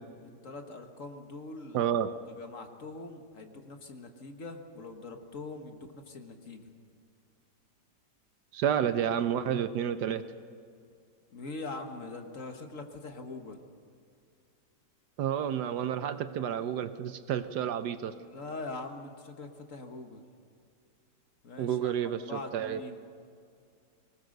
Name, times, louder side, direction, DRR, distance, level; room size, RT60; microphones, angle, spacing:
voice 1, 0.4-1.9 2.4-6.7 11.3-13.6 17.6-17.7 18.2-20.2 21.4-21.9 22.3-23.0, left 3 dB, 45° left, 5 dB, 1.7 m, -43 dB
voice 2, 1.7-2.1 8.5-10.2 15.2-18.1 21.6-22.8, right 9 dB, 70° right, 11 dB, 1.2 m, -30 dB
23.0 x 20.0 x 6.5 m, 2.3 s
omnidirectional pair, 2.0 m